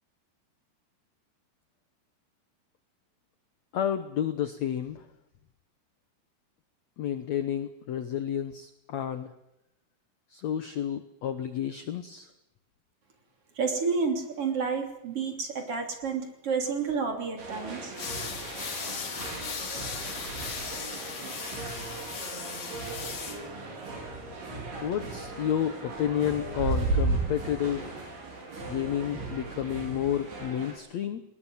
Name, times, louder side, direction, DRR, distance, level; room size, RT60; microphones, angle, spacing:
voice 1, 3.7-5.1 7.0-9.3 10.3-12.3 24.8-28.0 28.7-31.2, left 10 dB, 80° left, 10 dB, 1.6 m, -31 dB
voice 2, 13.6-17.9, right 5 dB, 35° right, 5 dB, 3.7 m, -30 dB
sound 1, 17.4-30.7, right 3 dB, 70° right, 7.1 m, -35 dB
sound 2, 18.0-23.4, left 6 dB, 50° left, 4.1 m, -37 dB
20.0 x 20.0 x 9.4 m, 0.85 s
omnidirectional pair, 4.7 m